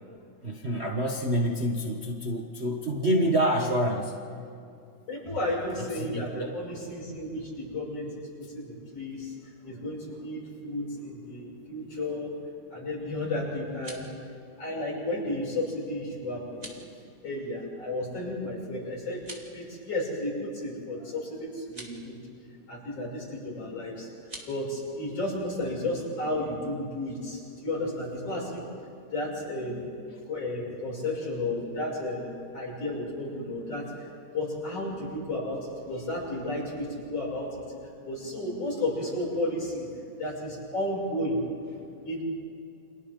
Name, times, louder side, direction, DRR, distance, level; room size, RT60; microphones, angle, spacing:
voice 1, 0.4-4.5 6.0-6.6, equal, 50° right, 0 dB, 0.7 m, -27 dB
voice 2, 5.1-9.3 9.6-12.4 12.7-14.1 14.6-16.7 17.2-22.2 22.7-24.1 24.5-28.7 29.1-29.9 30.3-34.1 34.3-37.7 38.0-39.9 40.2-42.2, left 1 dB, 55° left, -5 dB, 7.8 m, -33 dB
sound 1, 13.6-14.2 16.5-16.9 19.1-19.6 21.6-22.0 24.2-24.5, right 1 dB, 15° right, 2.1 m, -44 dB
29.5 x 27.5 x 3.8 m, 2.4 s
omnidirectional pair, 3.4 m